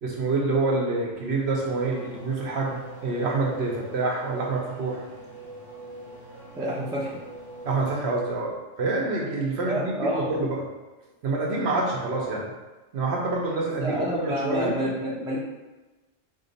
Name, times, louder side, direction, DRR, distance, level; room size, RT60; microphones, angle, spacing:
voice 1, 0.0-5.0 7.6-10.6 11.2-12.5 12.9-14.8, right 3 dB, 65° right, -2 dB, 0.8 m, -27 dB
Race car auto racing / Accelerating revving vroom, 1.1-8.4, right 1 dB, 15° left, 1.0 m, -44 dB
voice 2, 6.6-7.2 9.6-10.4 13.8-15.4, equal, 5° right, -5 dB, 0.3 m, -29 dB
3.6 x 2.0 x 3.8 m, 1.1 s
omnidirectional pair, 1.3 m